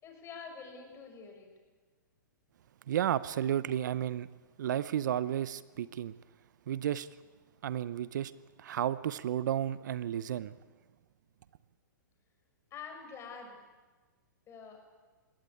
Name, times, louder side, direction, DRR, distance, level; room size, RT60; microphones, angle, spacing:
voice 1, 0.0-1.5 12.7-13.6 14.5-14.8, left 5 dB, 25° left, 3 dB, 6.1 m, -46 dB
voice 2, 2.9-4.3 4.6-6.1 6.7-7.1 7.6-8.3 8.6-10.5, right 10 dB, 65° right, 17 dB, 0.7 m, -32 dB
21.0 x 17.0 x 9.3 m, 1.4 s
hypercardioid pair, 120°, 11 cm